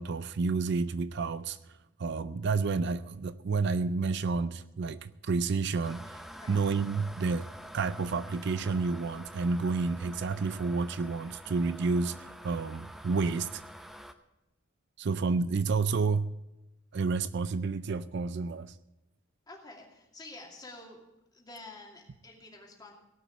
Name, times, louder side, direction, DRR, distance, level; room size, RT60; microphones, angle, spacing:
voice 1, 0.0-1.6 2.0-6.2 6.5-7.5 7.7-13.6 15.0-16.3 16.9-18.8, right 4 dB, 55° right, 15 dB, 0.4 m, -30 dB
sound 1, 5.8-14.1, equal, ahead, 0.6 m, -47 dB
voice 2, 19.5-21.0 21.3-22.9, left 2 dB, 20° left, -1 dB, 2.6 m, -49 dB
18.0 x 6.1 x 7.9 m, 0.96 s
head